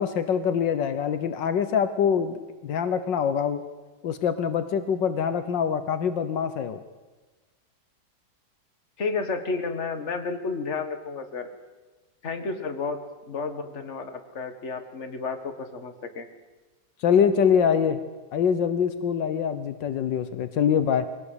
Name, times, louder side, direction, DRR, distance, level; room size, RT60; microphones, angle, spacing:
voice 1, 0.0-3.6 4.0-6.8 17.0-18.0 18.3-21.1, left 7 dB, 75° left, 10 dB, 1.7 m, -24 dB
voice 2, 9.0-11.5 12.2-13.0 13.3-16.3, left 4 dB, 40° left, 7 dB, 2.0 m, -31 dB
22.5 x 17.0 x 8.1 m, 1.2 s
omnidirectional pair, 2.0 m